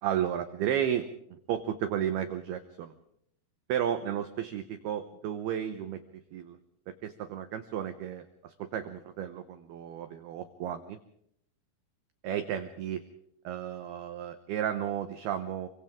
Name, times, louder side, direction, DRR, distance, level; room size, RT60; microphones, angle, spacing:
voice 1, 0.0-1.1 1.5-2.9 3.7-6.0 6.3-6.6 7.0-11.0 12.2-13.0 13.4-15.7, right 10 dB, 80° right, 8 dB, 2.3 m, -33 dB
30.0 x 24.0 x 3.7 m, 0.71 s
omnidirectional pair, 5.8 m